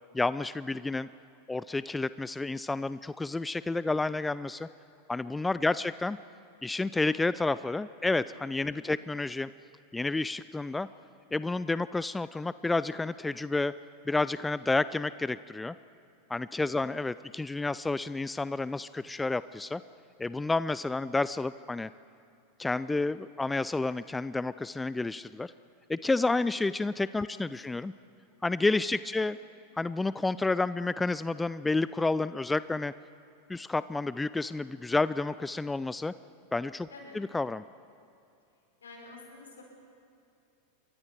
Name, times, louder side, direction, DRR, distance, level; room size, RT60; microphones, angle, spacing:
voice 1, 0.1-1.1 1.5-4.7 5.1-6.2 6.6-9.5 9.9-10.9 11.3-13.7 14.1-15.7 16.3-19.8 20.2-21.9 22.6-25.5 25.9-27.9 28.4-29.4 29.8-32.9 33.5-36.1 36.5-36.9 37.2-37.6, left 3 dB, 10° left, 16 dB, 0.4 m, -30 dB
voice 2, 5.6-5.9 8.7-9.0 16.6-16.8 27.3-27.4 36.9-37.2 38.8-39.6, left 3 dB, 75° left, -1 dB, 6.0 m, -50 dB
28.5 x 23.5 x 4.7 m, 2.5 s
figure-of-eight pair, 90°, 0 cm